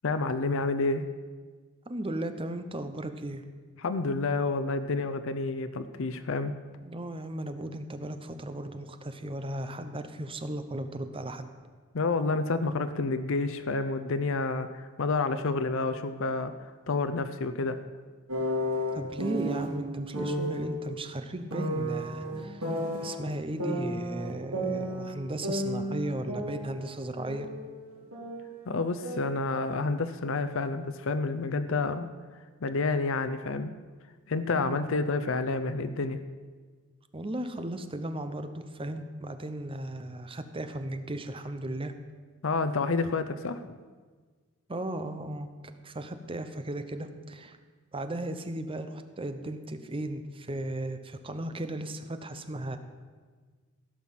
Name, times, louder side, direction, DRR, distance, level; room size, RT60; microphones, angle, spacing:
voice 1, 0.0-1.0 3.8-6.5 11.9-16.5 16.9-17.8 28.7-32.1 32.6-33.7 34.3-36.2 42.4-43.8, left 3 dB, 65° left, 10 dB, 0.6 m, -29 dB
voice 2, 1.9-3.4 6.8-11.5 18.9-27.5 34.5-34.9 37.1-41.9 44.7-45.5 45.8-47.6 47.9-52.8, right 1 dB, 25° right, 9 dB, 0.8 m, -36 dB
sound 1, 18.3-19.7 20.1-20.7 21.5-23.2 23.6-25.2 25.4-27.6 27.8-29.4, equal, 90° right, 3.2 m, -32 dB
16.0 x 5.9 x 7.4 m, 1.5 s
head